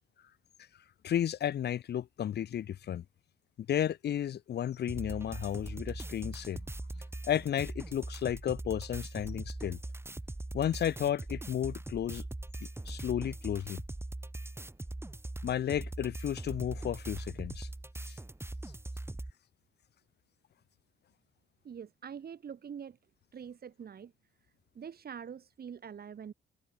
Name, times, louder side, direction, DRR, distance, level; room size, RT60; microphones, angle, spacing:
voice 1, 1.0-3.0 3.7-6.7 6.9-9.8 10.5-12.2 12.6-13.8 15.4-17.7, left 10 dB, 55° left, 0.9 m, -33 dB
sound 1, 4.9-19.3, right 2 dB, 10° right, 6.6 m, -41 dB
voice 2, 21.6-23.0 23.3-24.1 24.7-26.3, right 7 dB, 50° right, 6.0 m, -44 dB
cardioid pair, 90°, 20 cm